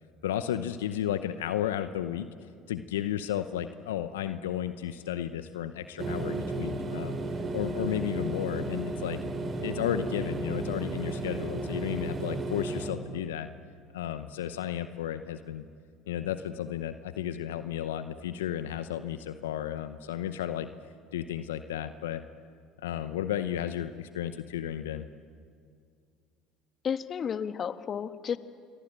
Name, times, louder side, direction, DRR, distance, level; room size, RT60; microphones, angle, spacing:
voice 1, 0.2-2.3 2.7-7.2 7.5-9.2 9.6-13.5 13.9-15.7 16.1-20.7 21.1-22.2 22.8-25.0, left 10 dB, 85° left, 11 dB, 0.8 m, -33 dB
sound 1, 6.0-12.9, right 2 dB, 35° right, 3.4 m, -34 dB
voice 2, 26.8-28.4, left 7 dB, 45° left, 11 dB, 1.3 m, -32 dB
28.0 x 23.0 x 8.9 m, 2.2 s
hypercardioid pair, 70°, 0 cm